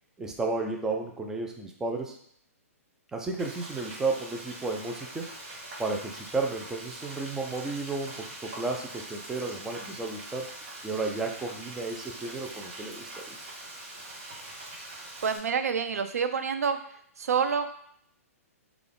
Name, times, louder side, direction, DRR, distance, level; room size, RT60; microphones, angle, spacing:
voice 1, 0.2-2.2 3.1-5.3 5.8-10.5 10.8-13.4, right 3 dB, 5° right, 1 dB, 0.4 m, -33 dB
Frying (food), 3.4-15.4, right 2 dB, 40° right, 1.2 m, -43 dB
voice 2, 15.2-16.8 17.2-17.7, right 6 dB, 80° right, 9 dB, 0.4 m, -27 dB
3.6 x 2.3 x 3.4 m, 0.67 s
hypercardioid pair, 135°, 8 cm